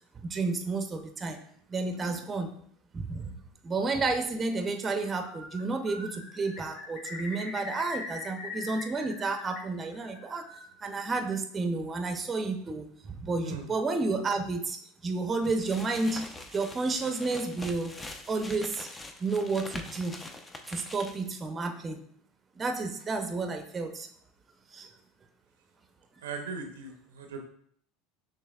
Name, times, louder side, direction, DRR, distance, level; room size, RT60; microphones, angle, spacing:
voice 1, 0.2-1.4 1.7-2.5 2.9-3.4 3.6-10.5 10.8-14.8 15.0-16.2 16.5-17.9 18.3-18.9 19.2-20.2 20.7-22.0 22.6-24.1 24.7-24.9, right 3 dB, 25° right, 6 dB, 0.6 m, -31 dB
Bird, 5.0-5.6 5.9-9.6 9.9-10.7, left 3 dB, 50° left, 1.5 m, -42 dB
sound 1, 15.4-21.4, left 2 dB, 15° left, 0.5 m, -44 dB
voice 2, 26.2-27.4, right 5 dB, 85° right, 4 dB, 0.6 m, -39 dB
6.2 x 3.0 x 2.3 m, 0.64 s
hypercardioid pair, 80°, 0 cm